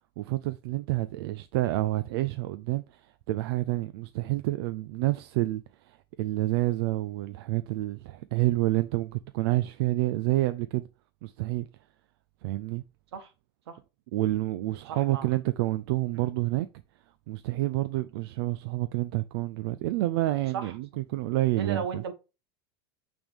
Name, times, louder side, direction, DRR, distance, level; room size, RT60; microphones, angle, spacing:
voice 1, 0.2-3.0 3.3-10.8 11.2-11.7 12.4-12.8 14.1-16.7 17.3-22.0, right 17 dB, 65° right, 0.5 m, -28 dB
voice 2, 14.9-15.3 16.1-16.3 20.5-20.8 21.5-22.1, right 6 dB, 85° right, 1.4 m, -35 dB
8.6 x 3.6 x 3.5 m
supercardioid pair, 115°, 13 cm